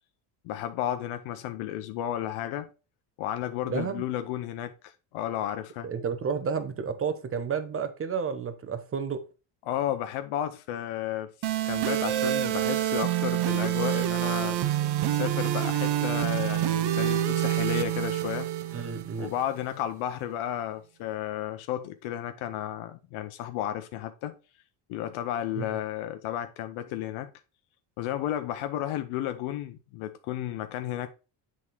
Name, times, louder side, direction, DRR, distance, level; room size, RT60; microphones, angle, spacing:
voice 1, 0.4-2.7 3.2-5.9 9.6-14.6 15.0-18.5 19.2-24.4 24.9-27.3 28.0-31.1, left 11 dB, 75° left, 0.8 m, -33 dB
voice 2, 3.7-4.1 5.8-9.2 18.7-19.3 25.6-25.8, right 6 dB, 25° right, 1.0 m, -31 dB
sound 1, 11.4-19.4, right 13 dB, 50° right, 0.8 m, -27 dB
7.9 x 3.7 x 4.6 m
cardioid pair, 115°, 49 cm